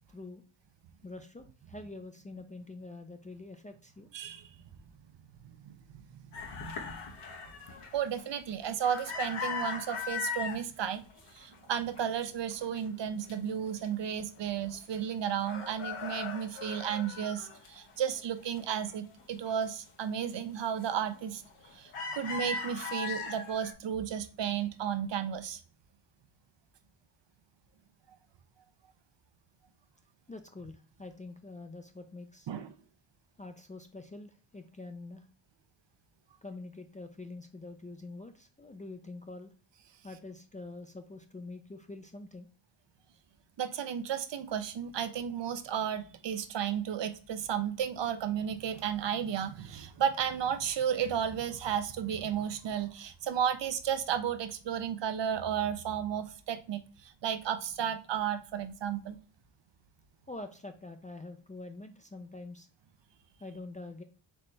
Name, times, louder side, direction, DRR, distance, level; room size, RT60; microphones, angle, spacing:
voice 1, 0.1-0.4 1.0-4.1 30.3-32.5 33.4-35.3 36.4-39.5 40.0-42.5 60.3-62.7 63.4-64.0, left 2 dB, 20° left, 5 dB, 0.3 m, -45 dB
voice 2, 4.1-4.5 5.6-5.7 6.0-6.1 6.5-7.0 7.9-11.0 11.3-21.4 21.7-25.6 32.5-32.7 43.6-59.2, right 8 dB, 60° right, 11 dB, 0.6 m, -33 dB
sound 1, 6.3-10.6 11.1-11.7 11.9-13.3 13.8-13.9 14.2-15.1 15.4-18.2 18.6-19.6 20.1-20.3 20.8-21.2 21.5-23.7, left 5 dB, 80° left, 1.1 m, -39 dB
4.2 x 3.3 x 3.2 m, 0.39 s
cardioid pair, 90°, 50 cm